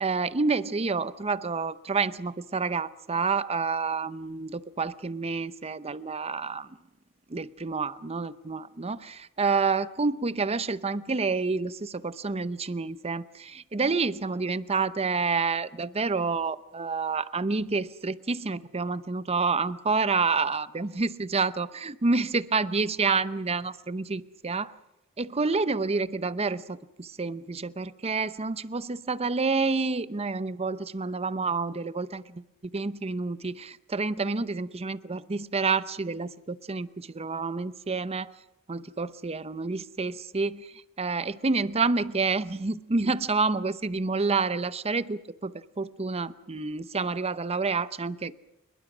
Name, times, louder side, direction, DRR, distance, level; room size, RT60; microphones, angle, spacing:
voice 1, 0.0-6.8 7.3-24.7 25.2-32.4 32.7-38.3 38.7-48.4, right 4 dB, 30° right, 0.7 m, -28 dB
26.5 x 22.0 x 6.1 m
head